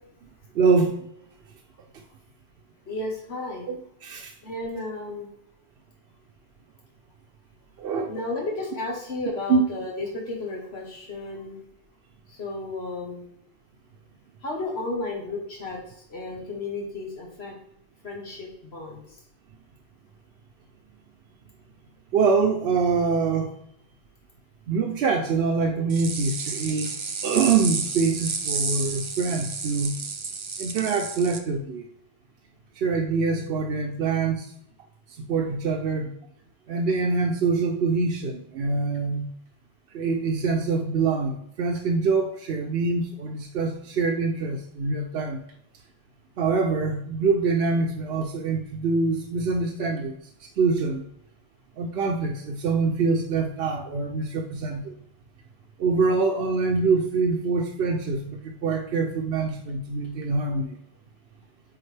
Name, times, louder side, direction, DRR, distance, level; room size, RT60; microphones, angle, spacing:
voice 1, 0.6-0.9 3.7-4.3 7.8-8.1 9.5-9.6 22.1-23.5 24.7-26.9 27.2-30.0 30.6-31.8 32.8-34.5 35.3-36.1 36.7-39.3 39.9-45.4 46.4-50.2 50.6-51.1 51.8-55.0 55.8-60.7, right 4 dB, 75° right, 2 dB, 0.8 m, -24 dB
voice 2, 2.9-3.6 4.4-5.3 8.1-11.6 12.4-13.3 14.4-15.8 16.1-17.5 18.0-19.0, left 2 dB, 80° left, -1 dB, 1.5 m, -33 dB
sound 1, 25.9-31.4, right 4 dB, 40° right, 0.5 m, -31 dB
8.5 x 3.9 x 3.3 m, 0.72 s
omnidirectional pair, 1.1 m